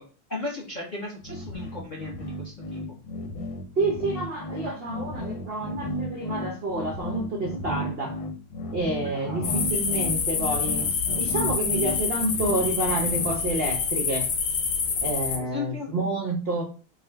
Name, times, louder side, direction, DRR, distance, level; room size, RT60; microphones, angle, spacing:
voice 1, 0.3-2.8 9.0-9.6 15.4-15.9, left 3 dB, 40° left, -3 dB, 0.6 m, -36 dB
sound 1, 1.2-13.8, equal, 90° left, 1.7 m, -34 dB
voice 2, 3.8-8.2 8.7-14.3 15.0-16.6, right 2 dB, 70° right, 0 dB, 0.5 m, -29 dB
sound 2, 9.4-15.4, left 5 dB, 70° left, 1.5 m, -27 dB
3.6 x 2.2 x 4.4 m, 0.36 s
omnidirectional pair, 2.1 m